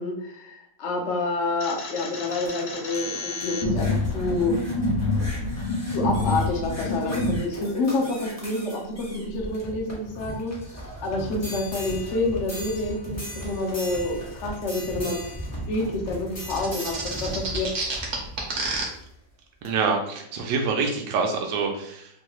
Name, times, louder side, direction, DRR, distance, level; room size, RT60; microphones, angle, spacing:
voice 1, 0.0-4.6 5.9-15.2 15.7-17.7, left 2 dB, 65° left, 1 dB, 0.7 m, -28 dB
sound 1, 1.4-19.1 19.6-19.7, equal, 15° left, 0.6 m, -38 dB
sound 2, 1.6-7.4, left 2 dB, 85° left, 1.2 m, -27 dB
sound 3, 16.5-18.8, right 3 dB, 55° right, 0.9 m, -29 dB
voice 2, 19.6-22.1, right 4 dB, 85° right, 2 dB, 1.2 m, -26 dB
3.2 x 2.3 x 2.9 m, 0.73 s
omnidirectional pair, 1.9 m